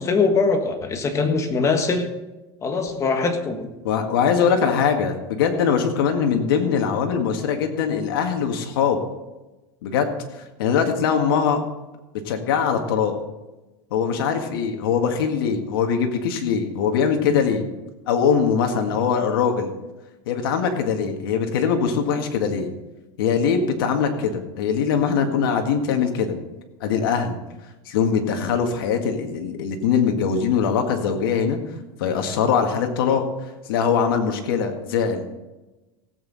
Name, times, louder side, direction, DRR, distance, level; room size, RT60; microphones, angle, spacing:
voice 1, 0.0-2.1 2.6-3.7, left 4 dB, 25° left, 6 dB, 1.5 m, -22 dB
voice 2, 3.8-9.0 9.8-11.6 12.3-13.2 13.9-17.7 18.1-19.7 20.3-22.7 23.2-26.4 26.8-27.4 27.9-31.6 32.0-33.3 33.7-35.3, left 6 dB, 90° left, 4 dB, 1.8 m, -22 dB
17.0 x 8.3 x 4.1 m, 1.1 s
supercardioid pair, 140°, 12 cm